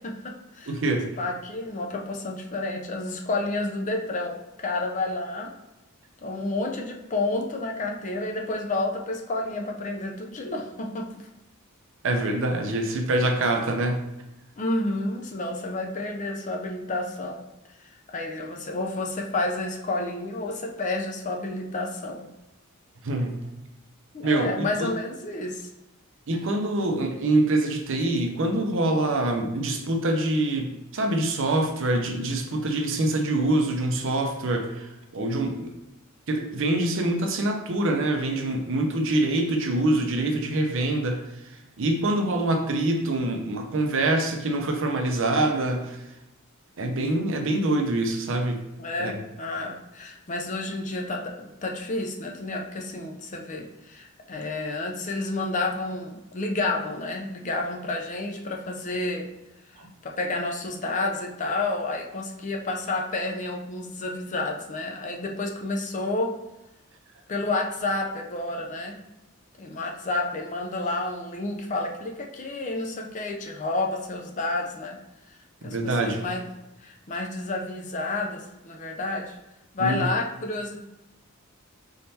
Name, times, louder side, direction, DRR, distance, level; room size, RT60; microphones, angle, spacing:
voice 1, 0.0-0.8 1.2-5.5 6.2-11.1 14.6-17.5 17.8-22.3 24.1-25.7 48.8-59.3 59.7-66.3 67.3-69.0 69.6-75.0 75.6-76.5 76.8-79.3 79.7-80.8, left 2 dB, 35° left, 2 dB, 0.5 m, -30 dB
voice 2, 0.7-1.1 12.0-14.0 23.0-23.4 24.2-24.9 26.3-35.7 36.3-46.0 46.8-48.6 49.0-49.2 59.8-59.9 75.6-76.2 79.8-80.1, right 2 dB, 60° right, 4 dB, 0.6 m, -25 dB
4.3 x 3.6 x 2.7 m, 0.95 s
head